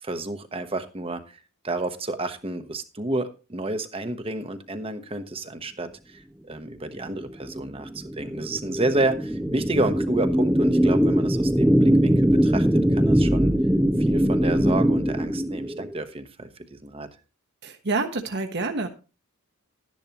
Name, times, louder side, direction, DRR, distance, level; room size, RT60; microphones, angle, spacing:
voice 1, 0.0-13.5 14.0-17.1, right 2 dB, 25° right, 9 dB, 1.1 m, -30 dB
sound 1, 7.2-15.9, equal, 5° right, 0.6 m, -21 dB
voice 2, 17.6-18.9, right 3 dB, 50° right, 5 dB, 1.2 m, -27 dB
12.5 x 10.5 x 3.0 m, 0.32 s
head